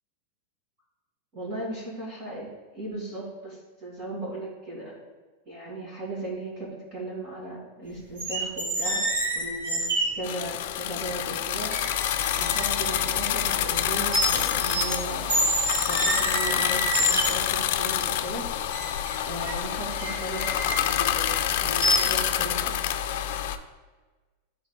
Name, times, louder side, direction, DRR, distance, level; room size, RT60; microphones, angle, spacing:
voice 1, 1.3-5.0 5.5-9.0 9.3-11.7 12.4-15.4 15.9-18.5 19.3-22.8, right 2 dB, 30° right, -5 dB, 2.2 m, -37 dB
sound 1, 8.2-10.1 11.0-11.1 11.7-13.9 14.1-15.0 15.3-17.6 18.7-21.4 21.8-22.0, right 1 dB, 65° right, 2.0 m, -28 dB
sound 2, 10.2-23.6, left 11 dB, 60° left, 0.4 m, -27 dB
9.9 x 3.9 x 3.7 m, 1.3 s
supercardioid pair, 160°, 0 cm